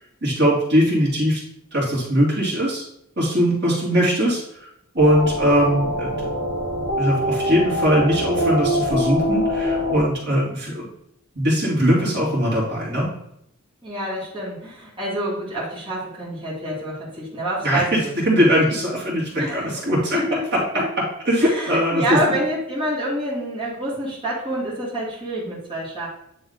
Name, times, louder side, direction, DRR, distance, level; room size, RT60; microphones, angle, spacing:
voice 1, 0.2-1.4 1.7-2.8 3.2-4.7 4.9-6.3 7.0-10.8 11.3-13.1 17.6-20.2 20.5-20.6 21.3-22.4, equal, 50° right, -6 dB, 2.4 m, -20 dB
sound 1, 5.0-10.0, equal, 65° left, 1.6 m, -24 dB
voice 2, 13.8-18.0 18.3-18.5 19.4-20.4 20.7-20.8 21.4-26.1, right 1 dB, 25° right, -9 dB, 2.2 m, -27 dB
9.2 x 3.5 x 3.9 m, 0.76 s
head